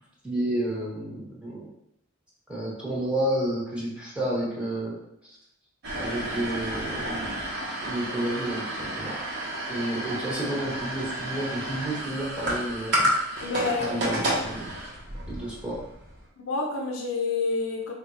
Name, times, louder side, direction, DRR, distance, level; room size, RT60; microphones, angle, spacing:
voice 1, 0.2-1.6 2.5-4.9 5.2-5.4 6.0-7.4 7.8-9.1 9.7-12.9 13.8-14.7 15.3-15.9, right 1 dB, 5° right, -6 dB, 1.0 m, -30 dB
sound 1, 5.8-16.2, right 1 dB, 55° right, 1.0 m, -31 dB
voice 2, 13.4-14.1 16.4-17.9, left 3 dB, 85° left, 0 dB, 0.6 m, -28 dB
3.5 x 2.4 x 4.1 m, 0.76 s
head